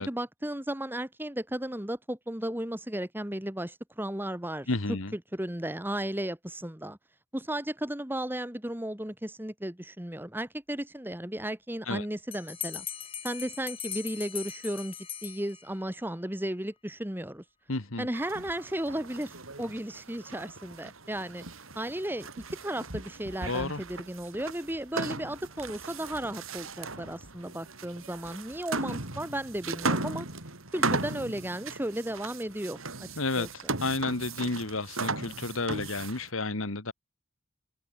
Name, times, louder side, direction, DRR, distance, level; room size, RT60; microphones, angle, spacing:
voice 1, 0.0-4.7 5.1-7.0 7.3-12.9 13.2-17.4 18.0-21.4 21.8-30.3 30.7-33.1 33.4-33.5, right 1 dB, 10° right, 1.8 m, -35 dB
voice 2, 4.7-5.1 11.9-12.0 17.7-18.1 23.5-23.8 33.2-33.5 33.8-36.9, left 3 dB, 80° left, 2.1 m, -31 dB
Bell, 12.3-15.9, left 9 dB, 25° left, 1.4 m, -39 dB
sound 1, 18.1-36.3, right 3 dB, 85° right, 6.2 m, -37 dB
head